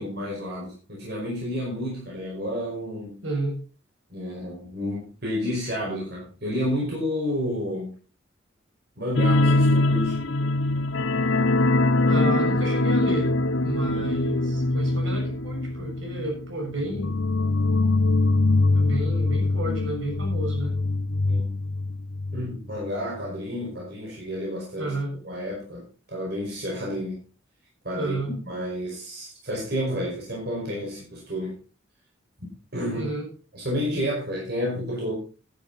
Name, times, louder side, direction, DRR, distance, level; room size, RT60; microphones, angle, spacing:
voice 1, 0.0-3.2 4.1-7.9 9.0-10.2 13.9-14.1 21.2-21.6 22.3-24.9 25.2-27.2 27.8-28.1 28.5-31.6 32.7-33.1 33.5-35.1, equal, 55° right, -3 dB, 5.3 m, -30 dB
voice 2, 3.2-3.6 12.1-13.3 13.6-17.2 18.7-20.7 24.8-25.1 27.9-28.3 32.9-33.3, right 2 dB, 75° right, 1 dB, 6.6 m, -31 dB
sound 1, 9.2-22.4 22.7-22.9 23.3-23.4, left 2 dB, 80° left, 0.9 m, -23 dB
12.0 x 11.0 x 4.1 m, 0.35 s
head